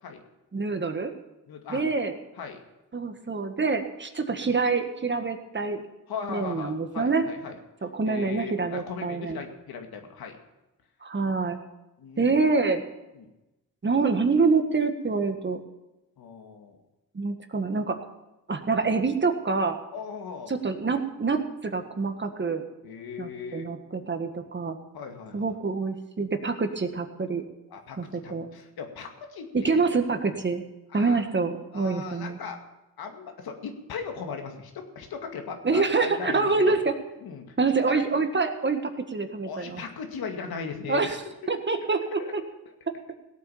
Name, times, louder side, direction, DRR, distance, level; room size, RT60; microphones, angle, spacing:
voice 1, 0.5-1.1 1.7-2.1 2.9-5.8 6.3-7.3 7.8-9.4 11.0-11.6 12.2-12.8 13.8-15.6 17.1-18.0 18.5-19.8 20.5-22.6 23.2-24.8 25.3-27.4 28.0-28.5 29.5-30.6 30.9-32.4 35.6-36.9 37.6-39.8 40.9-41.2 41.5-42.4, right 4 dB, 30° right, 7 dB, 1.6 m, -26 dB
voice 2, 1.5-1.8 2.4-2.6 6.1-7.5 8.0-10.4 12.0-12.4 13.2-13.3 16.2-16.8 19.9-20.5 22.8-23.7 24.9-25.5 27.7-29.8 30.9-31.2 31.7-32.6 33.0-36.7 37.2-38.0 39.5-41.6 42.2-42.3, left 5 dB, 80° left, 4 dB, 2.3 m, -38 dB
17.5 x 8.4 x 7.2 m, 0.97 s
cardioid pair, 85°, 37 cm